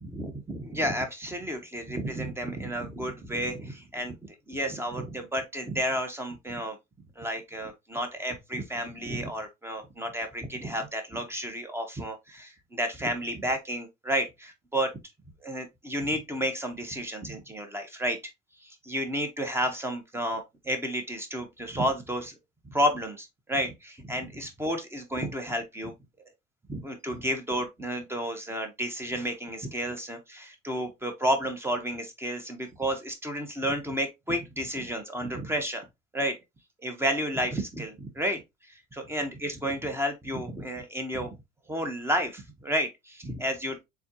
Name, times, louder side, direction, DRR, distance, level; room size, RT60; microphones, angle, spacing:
voice 1, 0.1-4.2 4.5-6.8 7.2-14.9 15.4-18.2 18.6-22.3 22.7-25.9 26.7-35.9 36.1-36.4 36.8-38.4 38.7-41.4 41.7-43.8, equal, 10° right, 1.3 m, -31 dB
4.3 x 3.6 x 3.0 m
supercardioid pair, 90°, 21 cm